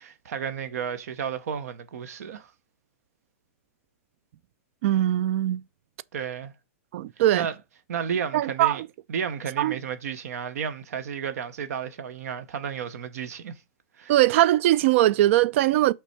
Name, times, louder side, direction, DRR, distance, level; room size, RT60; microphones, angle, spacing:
voice 1, 0.0-2.5 6.1-6.5 7.3-7.6 7.9-8.8 9.1-13.6 14.0-14.2, right 7 dB, 75° right, 0.8 m, -32 dB
voice 2, 4.8-5.6 6.9-7.5 8.3-8.8 9.6-9.8 14.1-15.9, right 14 dB, 50° right, 0.4 m, -21 dB
5.7 x 3.4 x 5.8 m
hypercardioid pair, 150°, 8 cm